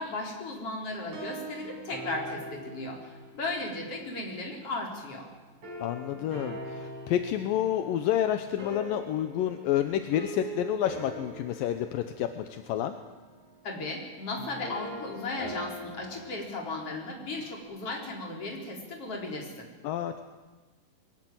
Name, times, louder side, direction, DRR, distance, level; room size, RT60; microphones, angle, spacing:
voice 1, 0.0-5.3 13.6-19.7, left 2 dB, 40° left, 1 dB, 5.0 m, -36 dB
sound 1, 1.0-4.3 5.6-17.6, right 1 dB, 50° right, 7.2 m, -43 dB
voice 2, 5.8-12.9 19.8-20.2, left 11 dB, 75° left, 8 dB, 2.6 m, -29 dB
22.0 x 19.5 x 8.9 m, 1.3 s
omnidirectional pair, 4.2 m